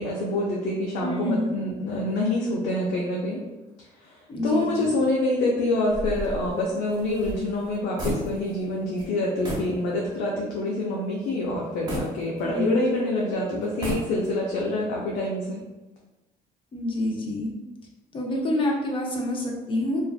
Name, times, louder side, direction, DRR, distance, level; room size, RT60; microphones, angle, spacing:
voice 1, 0.0-3.4 4.0-4.1 4.4-15.6, left 1 dB, 80° left, -3 dB, 0.5 m, -26 dB
voice 2, 1.0-1.6 4.3-5.0 12.4-13.0 16.7-17.5 18.1-20.0, left 1 dB, 30° left, -1 dB, 0.6 m, -27 dB
sound 1, 5.9-8.7 9.0-9.1 9.4-9.8 10.2-10.3 11.9-12.9 13.6-14.5, equal, 25° right, 0.9 m, -33 dB
2.4 x 2.2 x 2.3 m, 1.1 s
cardioid pair, 110°, 17 cm